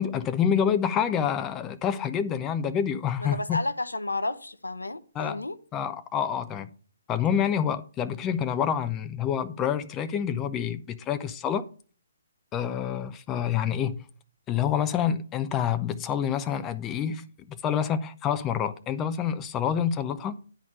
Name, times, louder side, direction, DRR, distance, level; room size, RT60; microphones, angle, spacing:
voice 1, 0.0-3.6 5.2-5.4 5.7-6.7 7.1-11.6 12.5-14.0 14.5-20.4, left 8 dB, 15° left, 0.5 m, -27 dB
voice 2, 3.2-5.6, left 2 dB, 75° left, 0.7 m, -31 dB
10.5 x 4.2 x 6.7 m
figure-of-eight pair, 135°, 0 cm